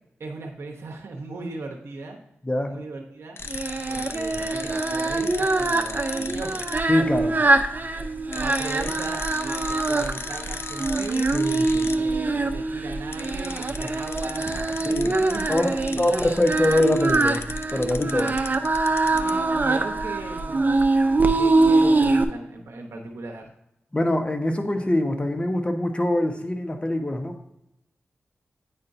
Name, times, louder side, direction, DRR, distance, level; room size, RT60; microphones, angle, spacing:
voice 1, 0.2-2.2 2.7-3.4 3.9-6.7 8.3-11.4 12.0-16.1 18.2-18.7 19.0-20.8 21.3-23.5, right 3 dB, 75° right, 2 dB, 0.9 m, -38 dB
voice 2, 2.4-2.8 6.9-7.3 11.3-11.9 14.8-15.1 15.5-17.4 17.7-18.3 23.9-27.6, left 1 dB, 25° left, 5 dB, 1.0 m, -24 dB
sound 1, 3.4-6.8 8.3-12.0 13.1-19.4, left 4 dB, 65° left, 0.4 m, -36 dB
Singing, 3.5-22.2, right 3 dB, 40° right, 0.7 m, -23 dB
9.3 x 4.3 x 2.6 m, 0.82 s
cardioid pair, 45°, 4 cm